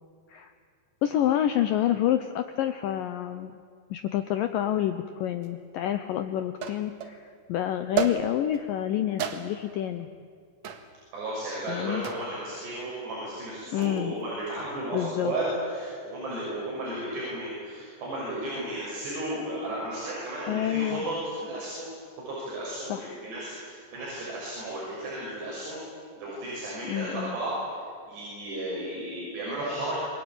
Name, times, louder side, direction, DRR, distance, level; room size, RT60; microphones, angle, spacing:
voice 1, 1.0-3.5 3.9-10.1 11.7-12.0 13.7-14.1 14.9-15.3 20.5-21.0 22.9-23.1 26.9-27.4, left 11 dB, 85° left, 9 dB, 1.9 m, -28 dB
sound 1, 5.4-5.5 6.6-7.2 8.0-8.6 9.2-9.8 10.6-10.9 12.0-12.4 13.6-14.0, right 8 dB, 55° right, 2.3 m, -31 dB
voice 2, 11.1-21.9 22.3-25.8 26.2-27.5 28.1-30.0, right 1 dB, 70° right, -7 dB, 8.6 m, -34 dB
28.0 x 22.5 x 8.8 m, 2.1 s
omnidirectional pair, 5.0 m